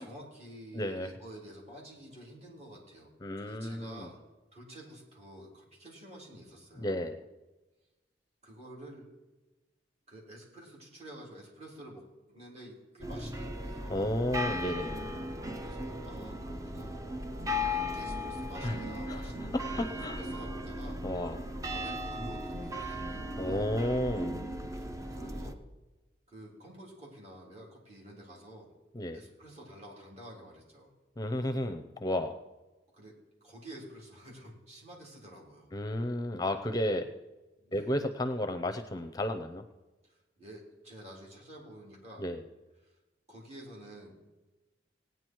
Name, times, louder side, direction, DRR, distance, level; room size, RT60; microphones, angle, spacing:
voice 1, 0.0-3.1 3.4-4.2 4.5-7.0 8.4-9.1 10.1-14.0 15.4-17.1 17.7-21.0 21.7-23.4 24.7-25.6 26.3-28.7 29.1-30.9 32.9-35.7 37.6-37.9 40.0-42.3 42.8-43.0 43.3-44.1, right 1 dB, 40° right, -3 dB, 3.7 m, -50 dB
voice 2, 0.7-1.1 3.2-4.1 6.8-7.2 13.9-15.0 18.6-18.8 19.1-20.2 21.0-21.4 23.4-24.4 28.9-29.2 31.2-32.3 35.7-37.1 37.7-39.6 42.2-42.4, left 1 dB, 20° left, 8 dB, 0.6 m, -32 dB
sound 1, 13.0-25.5, left 1 dB, 20° right, 0.8 m, -37 dB
17.5 x 9.4 x 4.6 m, 1.1 s
head